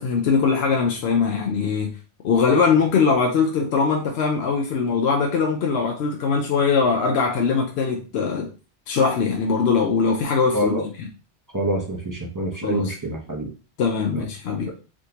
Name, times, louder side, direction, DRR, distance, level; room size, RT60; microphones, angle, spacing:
voice 1, 0.0-1.9 2.2-8.5 8.9-10.9 12.6-12.9 13.8-14.7, left 5 dB, 65° left, 1 dB, 0.8 m, -21 dB
voice 2, 11.5-13.5, right 1 dB, 25° right, -1 dB, 0.5 m, -26 dB
3.6 x 2.6 x 2.8 m, 0.34 s
omnidirectional pair, 1.3 m